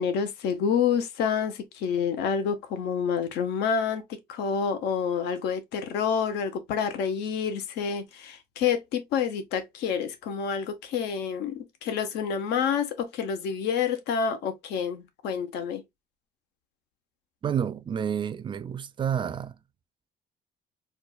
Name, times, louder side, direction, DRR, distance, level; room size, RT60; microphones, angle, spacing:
voice 1, 0.0-15.8, left 7 dB, 85° left, 0.7 m, -28 dB
voice 2, 17.4-19.6, right 8 dB, 30° right, 0.4 m, -29 dB
4.4 x 2.3 x 2.2 m
cardioid pair, 110°, 17 cm